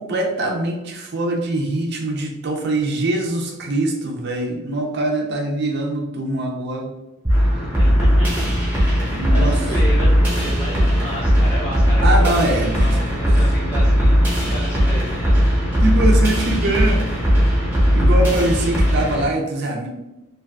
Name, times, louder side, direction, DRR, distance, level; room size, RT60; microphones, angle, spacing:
voice 1, 0.0-6.9 7.5-7.7 9.1-9.6 12.0-13.0 15.8-17.3 17.9-19.9, right 1 dB, 50° right, 0 dB, 0.5 m, -23 dB
sound 1, 7.2-19.2, equal, 10° right, 0.8 m, -17 dB
voice 2, 7.8-8.5 8.8-15.8, equal, 25° left, -6 dB, 0.5 m, -32 dB
2.5 x 2.3 x 3.3 m, 0.97 s
head